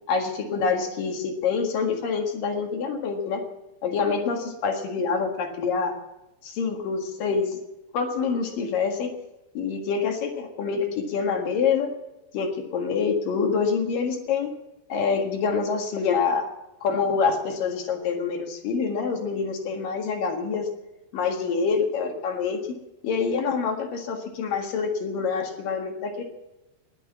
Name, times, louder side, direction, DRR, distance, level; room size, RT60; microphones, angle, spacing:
voice 1, 0.1-3.4 3.8-5.9 6.4-7.6 7.9-9.1 9.5-11.9 12.3-14.5 14.9-16.5 16.8-20.7 21.1-22.6 23.0-26.2, left 5 dB, 60° left, 3 dB, 3.1 m, -26 dB
20.5 x 8.1 x 8.3 m, 0.95 s
omnidirectional pair, 4.9 m